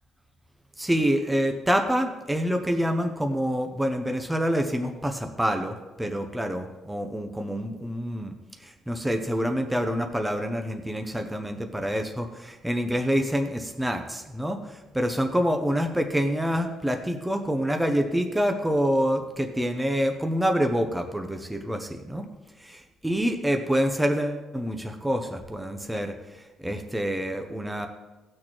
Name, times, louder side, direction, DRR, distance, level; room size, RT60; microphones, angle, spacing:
voice 1, 0.8-8.3 8.6-22.3 22.6-27.9, equal, 5° right, 5 dB, 0.6 m, -27 dB
17.5 x 6.4 x 3.0 m, 1.2 s
cardioid pair, 170°, 0 cm